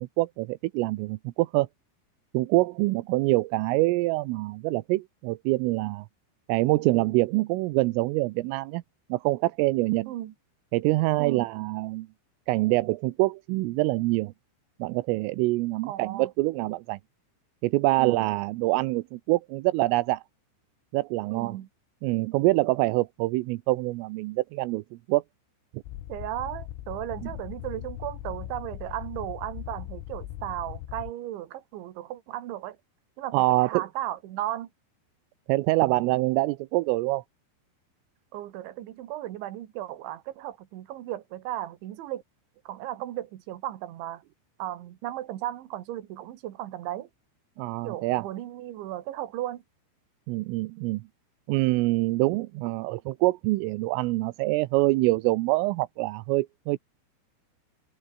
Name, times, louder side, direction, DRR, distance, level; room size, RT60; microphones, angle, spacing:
voice 1, 0.0-1.7 2.3-6.1 6.5-8.8 9.1-10.1 10.7-12.1 12.5-14.3 14.8-17.0 17.6-20.2 20.9-21.6 22.0-24.8 25.1-25.2 25.7-25.8 33.3-33.8 35.5-37.2 47.6-48.3 50.3-51.0 51.5-56.8, right 21 dB, 85° right, 3.4 m, -25 dB
voice 2, 15.8-16.3 18.0-18.3 21.3-21.7 26.1-32.8 33.2-34.7 38.3-42.2 42.7-44.2 44.6-47.1 47.8-49.6, right 13 dB, 70° right, 4.0 m, -35 dB
sound 1, 25.8-31.1, left 14 dB, 90° left, 4.3 m, -39 dB
omnidirectional pair, 5.8 m